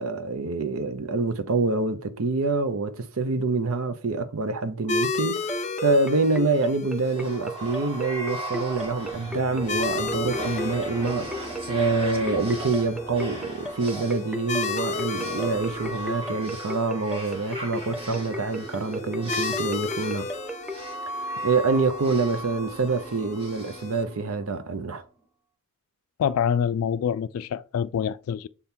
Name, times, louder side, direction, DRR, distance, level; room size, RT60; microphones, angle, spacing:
voice 1, 0.0-20.3 21.1-25.0, right 3 dB, 75° right, 0.6 m, -26 dB
sound 1, 4.9-24.0, left 4 dB, 35° left, 0.7 m, -35 dB
sound 2, 5.5-20.8, left 1 dB, 5° right, 0.4 m, -35 dB
sound 3, 7.0-24.7, right 1 dB, 25° right, 1.7 m, -37 dB
voice 2, 26.2-28.5, left 8 dB, 80° left, 0.3 m, -26 dB
6.9 x 3.6 x 4.3 m
head